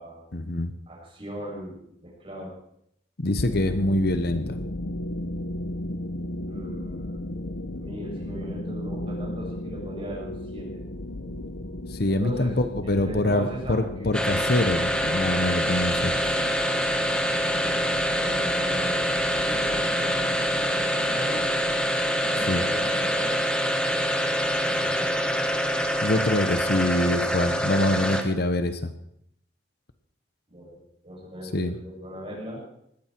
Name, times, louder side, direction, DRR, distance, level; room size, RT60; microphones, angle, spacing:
voice 1, 0.3-0.7 3.2-4.6 11.9-16.2 22.5-22.6 26.0-28.9 31.5-31.8, left 1 dB, 60° left, 10 dB, 1.1 m, -25 dB
voice 2, 0.9-2.5 6.5-7.3 7.8-10.8 12.1-12.5 12.8-14.2 17.5-17.8 18.2-19.0 19.3-21.6 22.2-23.4 23.8-25.2 30.5-32.6, equal, 30° right, -3 dB, 7.6 m, -38 dB
sound 1, 3.4-23.2, left 1 dB, 80° left, 1.2 m, -36 dB
sound 2, 14.1-28.5, equal, 5° left, 1.5 m, -25 dB
19.5 x 15.0 x 4.6 m, 0.72 s
head